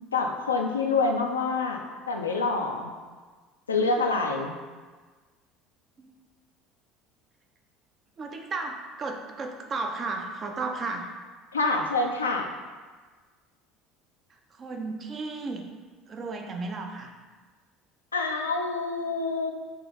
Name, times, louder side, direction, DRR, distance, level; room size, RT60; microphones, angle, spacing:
voice 1, 0.1-1.8 2.1-2.9 3.7-4.5 11.5-12.5 18.1-19.5, left 3 dB, 85° left, 2 dB, 0.3 m, -26 dB
voice 2, 8.2-11.1 14.3-15.6 16.1-17.1, right 3 dB, 35° right, 3 dB, 0.5 m, -34 dB
3.7 x 2.5 x 3.7 m, 1.4 s
figure-of-eight pair, 65°, 0 cm